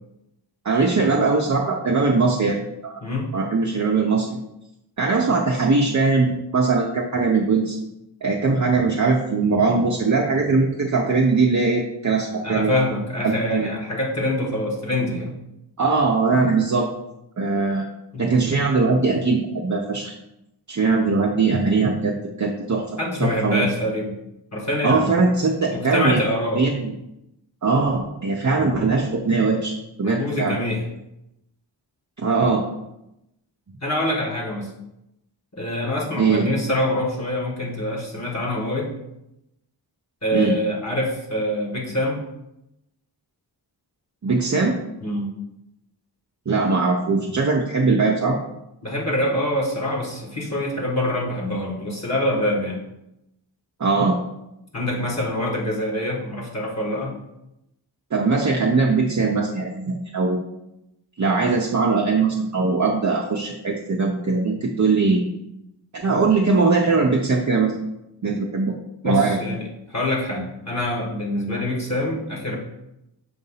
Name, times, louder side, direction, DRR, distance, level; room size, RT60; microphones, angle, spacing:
voice 1, 0.6-2.9 3.3-4.4 5.0-7.8 8.2-12.7 13.2-13.7 15.8-16.9 17.4-17.9 18.2-20.1 20.7-22.9 23.2-23.7 24.8-26.2 26.6-26.9 27.6-29.7 30.0-30.6 32.2-32.6 36.2-36.5 40.3-40.6 44.2-44.8 46.5-48.4 53.8-54.2 58.1-60.4 61.2-65.2 65.9-67.8 68.2-68.7 69.0-69.4, right 4 dB, 40° right, 0 dB, 0.6 m, -20 dB
voice 2, 3.0-3.3 12.4-15.3 18.1-18.3 23.0-24.1 24.5-25.1 25.7-26.6 30.0-30.8 33.8-34.7 35.5-38.9 40.2-42.3 45.0-45.3 48.8-52.8 54.7-57.2 69.0-69.6 69.9-72.6, left 1 dB, 40° left, -3 dB, 1.5 m, -25 dB
6.5 x 2.6 x 5.5 m, 0.87 s
wide cardioid pair, 75°, 43 cm